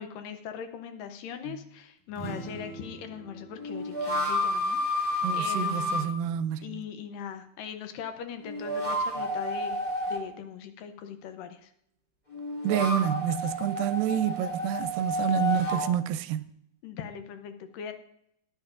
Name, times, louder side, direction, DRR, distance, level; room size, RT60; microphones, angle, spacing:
voice 1, 0.0-6.3 6.6-9.8 10.1-11.7 16.8-17.9, left 7 dB, 75° left, 2.4 m, -40 dB
sound 1, 1.4-1.6 3.6-6.0 8.4-10.2 12.3-15.9, left 1 dB, 15° left, 1.9 m, -30 dB
sound 2, 2.1-5.8, right 2 dB, 40° left, 0.4 m, -45 dB
voice 2, 5.2-6.8 12.6-16.5, right 10 dB, 80° right, 2.2 m, -28 dB
18.0 x 9.8 x 2.5 m
omnidirectional pair, 4.1 m